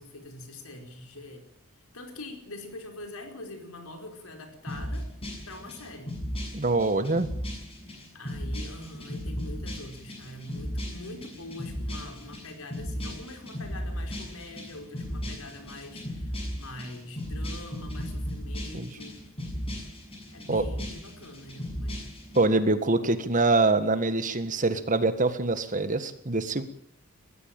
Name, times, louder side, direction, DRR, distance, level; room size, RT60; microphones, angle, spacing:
voice 1, 0.0-1.5 1.9-5.1 5.4-6.1 8.1-19.2 20.3-22.1, left 2 dB, 85° left, 5 dB, 4.9 m, -44 dB
sound 1, 4.7-22.4, equal, 25° left, 7.5 m, -36 dB
voice 2, 6.5-7.3 18.7-18.9 20.5-20.6 22.3-26.6, right 2 dB, 35° right, 11 dB, 1.7 m, -24 dB
21.5 x 15.0 x 9.0 m, 0.67 s
head